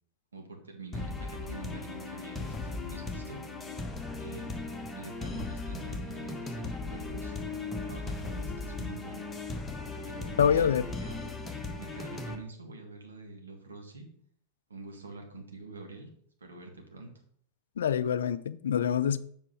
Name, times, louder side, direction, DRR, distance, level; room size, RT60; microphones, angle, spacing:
voice 1, 0.3-3.4 4.2-7.4 7.8-9.3 10.0-11.3 11.8-14.1 14.7-16.1 16.4-17.1, right 3 dB, 70° right, 1.7 m, -46 dB
sound 1, 0.9-12.3, left 3 dB, 15° left, 1.1 m, -37 dB
voice 2, 10.4-10.8 17.8-19.2, left 8 dB, 65° left, 0.4 m, -25 dB
7.4 x 5.0 x 4.8 m
figure-of-eight pair, 90°, 0 cm